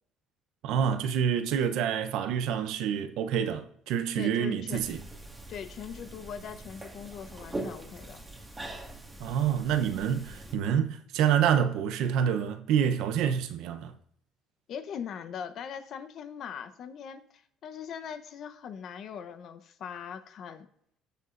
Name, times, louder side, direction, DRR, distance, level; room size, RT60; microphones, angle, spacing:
voice 1, 0.6-5.0 9.2-13.9, right 8 dB, 80° right, 0.8 m, -27 dB
voice 2, 4.1-4.8 5.5-8.2 14.7-20.7, left 7 dB, 55° left, 0.9 m, -40 dB
sound 1, 4.7-10.6, right 2 dB, 15° right, 1.9 m, -42 dB
18.5 x 6.8 x 2.6 m
cardioid pair, 115°, 0 cm